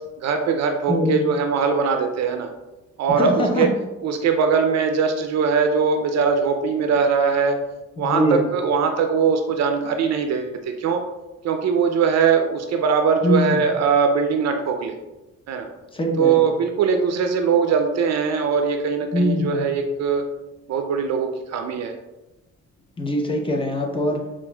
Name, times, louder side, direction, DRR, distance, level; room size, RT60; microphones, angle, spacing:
voice 1, 0.2-2.5 3.0-3.7 4.0-7.6 8.0-11.0 11.4-15.0 15.5-15.7 16.2-20.2 20.7-21.9, right 6 dB, 60° right, 5 dB, 0.4 m, -21 dB
voice 2, 0.9-1.2 3.1-3.7 8.0-8.4 13.2-13.6 15.9-16.4 19.1-19.7 23.0-24.2, left 1 dB, 15° left, 1 dB, 0.7 m, -22 dB
5.7 x 2.4 x 2.2 m, 1.0 s
cardioid pair, 90°, 30 cm